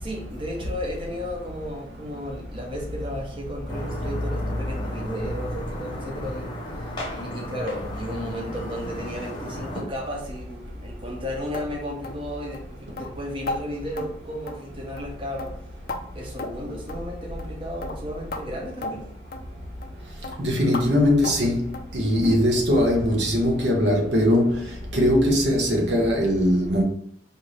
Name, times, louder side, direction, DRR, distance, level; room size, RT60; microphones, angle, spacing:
voice 1, 0.0-15.5 16.1-19.1, equal, 25° right, 0.8 m, -34 dB
sound 1, 3.7-9.8, equal, 25° left, 0.9 m, -34 dB
sound 2, 11.5-11.7 12.0-12.2 12.5-12.7 13.0-13.1 13.5-13.6 14.0-14.1 14.5-14.7 15.0-15.1 15.4-16.0 16.4-16.6 16.9-17.0 17.4-17.5 17.8-18.0 18.3-18.4 18.8-18.9 19.3-19.5 19.8-20.0 20.2-20.4 20.7-20.9 21.2-21.4 21.7-21.9 22.2-22.4 22.7-22.9 23.2-23.3 23.7-23.8, left 2 dB, 50° left, 0.5 m, -34 dB
voice 2, 20.4-21.6 21.9-24.6 24.9-26.8, left 1 dB, 60° right, 1.0 m, -20 dB
4.5 x 2.6 x 3.2 m
head